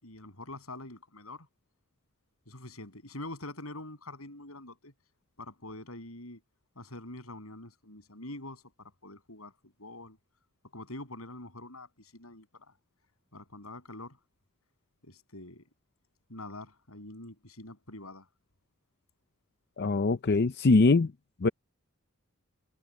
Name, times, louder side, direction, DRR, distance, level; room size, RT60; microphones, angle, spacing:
voice 1, 0.0-1.5 2.5-4.9 5.4-6.4 6.8-9.5 9.8-10.2 10.7-12.7 13.3-14.2 15.0-15.6 16.3-18.3, left 2 dB, 85° left, 7.4 m, -45 dB
voice 2, 19.8-21.1 21.4-21.5, left 3 dB, 50° left, 0.6 m, -22 dB
head